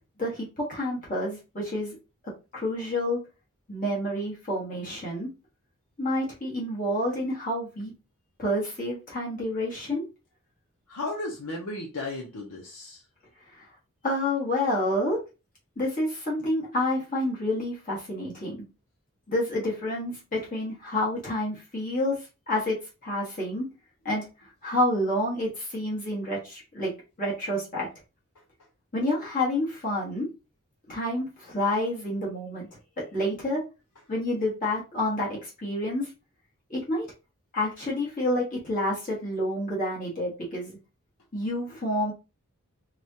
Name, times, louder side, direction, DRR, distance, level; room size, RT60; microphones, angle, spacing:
voice 1, 0.2-2.0 2.2-3.2 3.7-5.3 6.0-7.9 8.4-10.0 13.5-13.7 14.0-15.2 15.8-18.6 19.3-22.2 22.5-23.7 24.1-24.3 24.6-26.9 27.2-27.9 28.9-30.3 30.9-32.7 33.0-33.6 34.1-36.1 36.7-37.1 37.5-40.8 41.3-42.1, left 1 dB, 35° left, -5 dB, 1.6 m, -29 dB
voice 2, 10.9-13.0, left 2 dB, 90° left, -1 dB, 0.8 m, -34 dB
4.8 x 2.4 x 2.8 m, 0.29 s
head